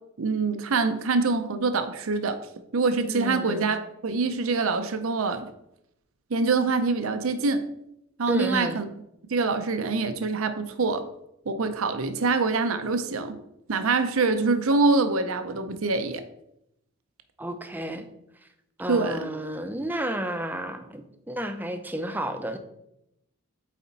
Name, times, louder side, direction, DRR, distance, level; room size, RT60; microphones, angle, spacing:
voice 1, 0.2-2.4 2.7-5.5 6.3-7.6 8.2-8.9 9.3-11.0 11.5-13.3 13.7-16.2 18.9-19.3, right 4 dB, 75° right, 9 dB, 0.6 m, -25 dB
voice 2, 3.1-3.7 8.3-8.8 17.4-18.0 18.8-22.6, right 1 dB, 10° right, 7 dB, 0.5 m, -31 dB
8.3 x 4.2 x 4.0 m, 0.81 s
head